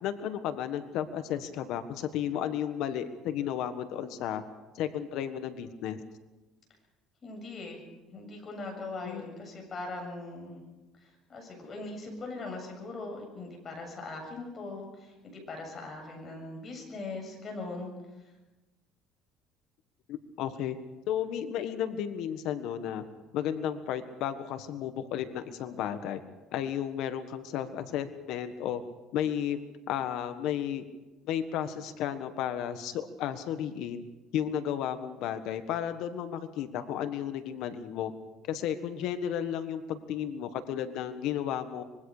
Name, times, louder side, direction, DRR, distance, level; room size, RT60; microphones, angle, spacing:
voice 1, 0.0-4.4 4.7-6.0 9.0-9.2 20.1-20.8 21.1-23.0 23.3-26.2 26.5-28.8 29.1-29.6 29.9-30.8 31.3-34.0 34.3-38.1 38.5-41.8, left 10 dB, 70° left, 9 dB, 1.5 m, -33 dB
voice 2, 7.2-7.8 8.1-10.6 11.0-17.9, left 2 dB, 30° left, 2 dB, 7.6 m, -40 dB
25.0 x 22.5 x 5.0 m, 1.1 s
cardioid pair, 130°, 0 cm